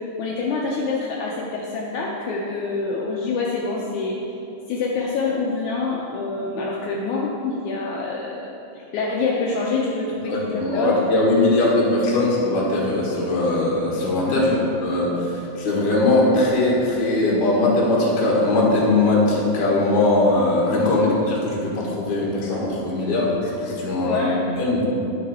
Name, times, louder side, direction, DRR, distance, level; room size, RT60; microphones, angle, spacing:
voice 1, 0.2-4.2 4.7-11.4 14.3-14.6 20.8-21.2 24.0-24.4, left 4 dB, 75° left, -3 dB, 2.0 m, -26 dB
voice 2, 10.3-14.5 14.8-21.0 21.2-24.2 24.6-24.8, left 2 dB, 40° left, -4 dB, 1.9 m, -20 dB
10.0 x 6.4 x 4.3 m, 2.8 s
omnidirectional pair, 3.7 m